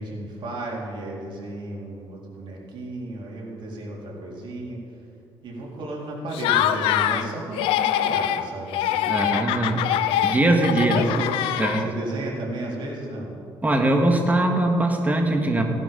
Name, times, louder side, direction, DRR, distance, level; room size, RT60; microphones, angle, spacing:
voice 1, 0.0-4.8 5.4-9.4 10.8-11.3 11.8-13.3, right 2 dB, 60° right, -3 dB, 3.9 m, -34 dB
Laughter, 6.3-7.3 7.5-8.4 8.7-12.1, left 11 dB, 90° left, 0.6 m, -23 dB
voice 2, 9.1-9.9 10.2-11.0 11.6-11.9 13.6-15.6, right 2 dB, 15° right, 3 dB, 2.1 m, -21 dB
17.0 x 11.0 x 5.4 m, 2.7 s
cardioid pair, 85°, 9 cm